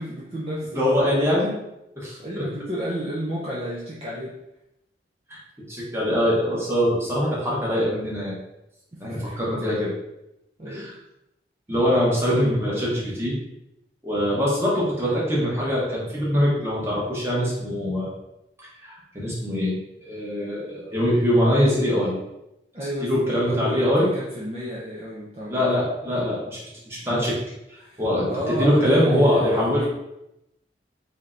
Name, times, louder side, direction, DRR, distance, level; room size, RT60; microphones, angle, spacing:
voice 1, 0.0-0.8 2.2-4.4 8.9-9.5 10.6-10.9 22.7-25.7 27.0-27.3 27.8-29.9, equal, 30° right, -6 dB, 0.5 m, -32 dB
voice 2, 0.7-1.5 2.0-2.4 5.7-8.3 9.0-9.9 10.7-10.9 11.7-13.4 14.0-18.1 18.8-22.2 23.0-24.1 25.5-26.6 26.9-27.3 28.0-29.9, equal, 15° right, -6 dB, 1.0 m, -23 dB
3.3 x 2.8 x 3.7 m, 0.88 s
head